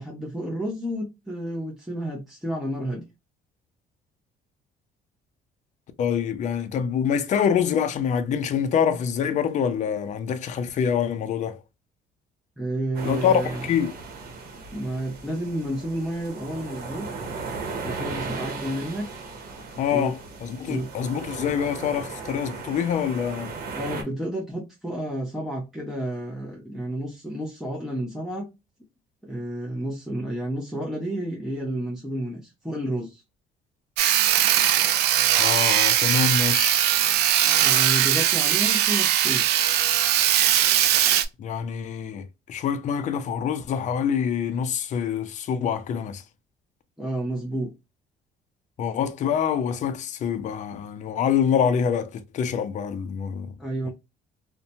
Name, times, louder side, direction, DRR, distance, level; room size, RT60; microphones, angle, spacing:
voice 1, 0.0-3.1 12.6-13.7 14.7-17.1 17.8-19.1 19.9-20.2 20.7-20.9 23.7-28.5 29.2-33.2 37.6-39.5 47.0-47.7 53.6-53.9, right 1 dB, ahead, 0.6 m, -31 dB
voice 2, 6.0-11.6 13.0-13.9 19.8-23.5 35.4-36.8 41.4-46.2 48.8-53.5, left 7 dB, 45° left, 0.5 m, -25 dB
sound 1, 12.9-24.0, right 4 dB, 60° right, 0.9 m, -36 dB
Sawing, 34.0-41.2, right 11 dB, 75° right, 0.4 m, -20 dB
2.6 x 2.1 x 2.6 m
cardioid pair, 110°, 17 cm